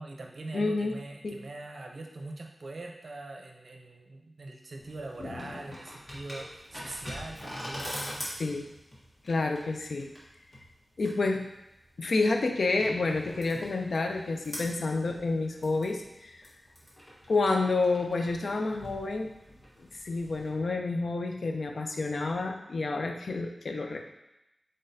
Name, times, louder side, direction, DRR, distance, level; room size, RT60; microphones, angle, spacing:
voice 1, 0.0-8.2 11.1-11.4, right 2 dB, 70° right, 2 dB, 0.5 m, -42 dB
voice 2, 0.5-1.0 1.2-1.4 5.2-5.6 8.4-8.7 9.3-10.1 11.0-11.5 12.0-16.4 17.3-19.3 19.8-24.0, left 3 dB, 80° left, 4 dB, 0.4 m, -29 dB
sound 1, 4.8-20.5, equal, 30° left, 1.2 m, -44 dB
3.9 x 3.6 x 2.6 m, 0.90 s
wide cardioid pair, 80°, 0 cm